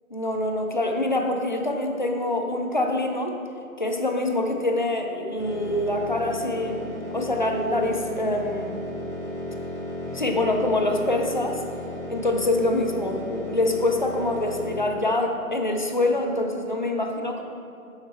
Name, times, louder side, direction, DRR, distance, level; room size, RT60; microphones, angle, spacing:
voice 1, 0.1-3.4 3.8-8.8 10.1-11.6 12.1-17.4, left 2 dB, 35° left, 3 dB, 0.4 m, -25 dB
sound 1, 5.4-14.7, left 1 dB, 15° right, 1.6 m, -34 dB
6.3 x 5.7 x 4.3 m, 2.5 s
figure-of-eight pair, 140°, 43 cm